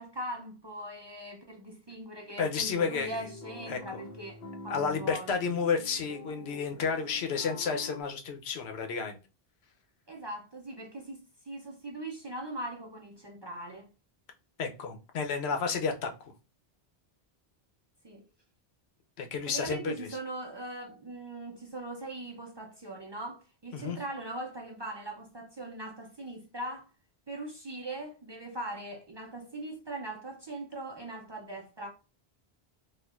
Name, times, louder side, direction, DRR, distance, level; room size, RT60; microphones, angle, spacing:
voice 1, 0.0-5.4 10.1-13.9 18.0-18.2 19.5-26.9 27.3-31.9, right 1 dB, 40° right, 0.3 m, -40 dB
voice 2, 2.4-3.1 3.7-3.8 4.7-9.2 14.6-16.1 19.2-20.1 23.7-24.0, left 5 dB, 80° left, 0.9 m, -31 dB
sound 1, 2.9-8.0, left 2 dB, 50° left, 0.7 m, -46 dB
4.3 x 2.4 x 2.3 m
omnidirectional pair, 1.1 m